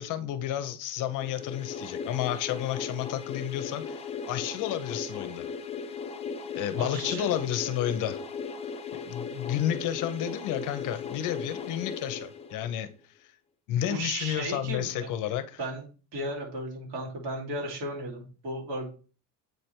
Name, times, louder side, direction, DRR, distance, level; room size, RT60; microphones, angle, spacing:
voice 1, 0.0-5.5 6.5-8.2 9.1-12.9 13.2-13.3 13.7-15.6, left 11 dB, 55° left, 0.7 m, -31 dB
sound 1, 1.1-12.9, left 5 dB, 15° left, 0.5 m, -37 dB
voice 2, 6.7-7.3 13.9-15.1 15.6-15.9 16.1-18.9, right 1 dB, 70° right, 2.9 m, -35 dB
8.0 x 3.3 x 4.4 m
cardioid pair, 170°, 38 cm